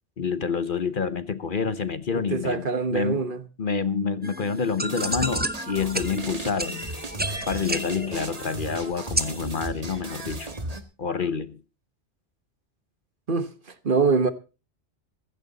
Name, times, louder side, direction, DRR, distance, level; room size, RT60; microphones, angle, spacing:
voice 1, 0.2-3.2 3.6-7.0 7.5-10.5 11.0-11.6, left 5 dB, 50° left, 1.1 m, -28 dB
voice 2, 2.1-3.4 13.3-13.5 13.8-14.3, right 4 dB, 50° right, 1.3 m, -24 dB
sound 1, 4.2-9.5, right 1 dB, 10° right, 0.9 m, -32 dB
sound 2, 4.9-10.8, right 1 dB, 35° right, 1.7 m, -36 dB
15.5 x 15.0 x 4.0 m
omnidirectional pair, 1.2 m